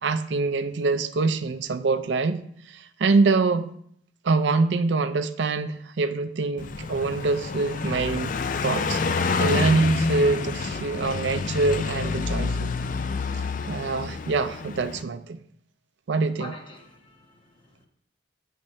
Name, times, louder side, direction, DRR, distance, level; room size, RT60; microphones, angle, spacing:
voice 1, 0.0-3.7 4.2-8.3 8.6-12.7 13.7-15.4 16.1-16.5, right 3 dB, 70° right, 0.4 m, -25 dB
Car passing by, 6.6-15.0, left 4 dB, 45° left, 0.3 m, -28 dB
voice 2, 16.3-17.9, left 2 dB, 25° left, 1.2 m, -45 dB
8.6 x 3.2 x 5.3 m
head